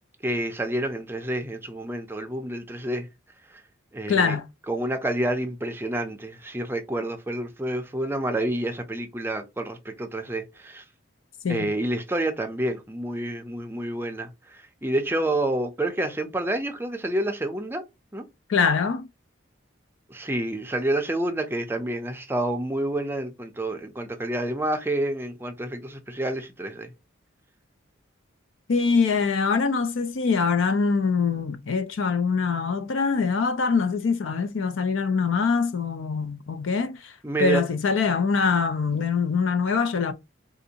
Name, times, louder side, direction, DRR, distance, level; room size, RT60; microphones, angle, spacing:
voice 1, 0.2-3.1 3.5-3.6 3.9-4.4 4.7-10.8 11.5-17.8 18.1-18.2 20.1-26.9 37.2-37.6, right 1 dB, 10° right, 0.4 m, -28 dB
voice 2, 4.1-4.5 11.4-11.7 18.5-19.1 28.7-37.1 37.4-40.1, left 5 dB, 70° left, 0.5 m, -24 dB
3.7 x 2.6 x 2.8 m
head